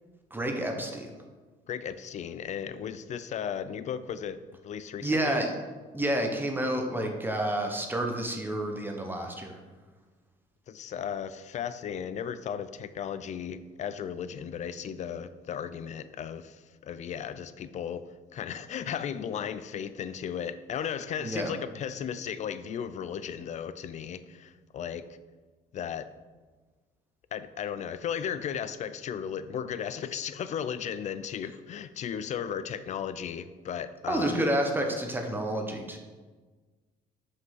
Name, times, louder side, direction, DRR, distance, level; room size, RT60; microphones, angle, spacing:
voice 1, 0.3-1.1 5.0-5.5 5.9-9.6 21.2-21.5 34.0-36.0, right 1 dB, 10° right, 3 dB, 0.9 m, -29 dB
voice 2, 1.7-4.4 4.6-5.4 10.7-25.1 25.7-26.1 27.3-34.4, left 8 dB, 45° left, 13 dB, 0.5 m, -35 dB
5.9 x 5.4 x 5.7 m, 1.4 s
cardioid pair, 110°, 17 cm